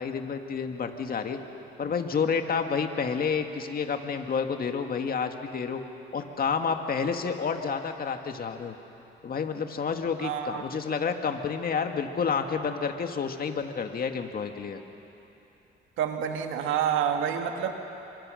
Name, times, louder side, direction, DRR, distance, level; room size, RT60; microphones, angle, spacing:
voice 1, 0.0-1.4 1.8-5.8 6.1-8.8 9.2-14.8, left 6 dB, 50° left, 5 dB, 2.0 m, -29 dB
voice 2, 10.2-10.6 16.0-17.7, right 8 dB, 90° right, 4 dB, 1.7 m, -28 dB
28.0 x 25.5 x 6.5 m, 3.0 s
cardioid pair, 90°, 20 cm